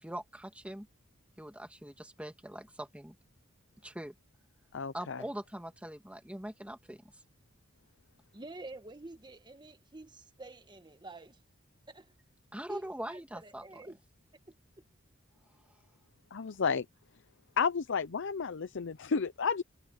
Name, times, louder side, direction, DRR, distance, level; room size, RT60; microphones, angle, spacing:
voice 1, 0.0-0.9 1.4-3.2 3.8-4.1 4.9-7.0 12.5-13.8, right 1 dB, 5° right, 2.0 m, -42 dB
voice 2, 4.7-5.2 16.3-16.9 17.6-19.6, left 5 dB, 65° left, 0.6 m, -31 dB
voice 3, 8.3-11.4 11.9-12.1 12.7-14.0 14.5-14.6, right 2 dB, 20° right, 1.5 m, -48 dB
head